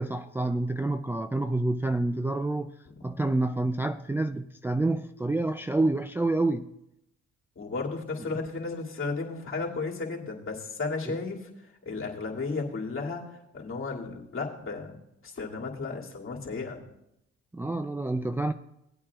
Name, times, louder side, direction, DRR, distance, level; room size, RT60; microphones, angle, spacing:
voice 1, 0.0-2.7 3.0-6.7 11.1-11.2 17.5-18.5, right 2 dB, 10° right, 0.4 m, -28 dB
voice 2, 7.6-11.5 11.8-13.2 13.5-15.0 15.2-16.8, left 4 dB, 45° left, 2.5 m, -34 dB
18.0 x 8.5 x 2.4 m
supercardioid pair, 70°, 29 cm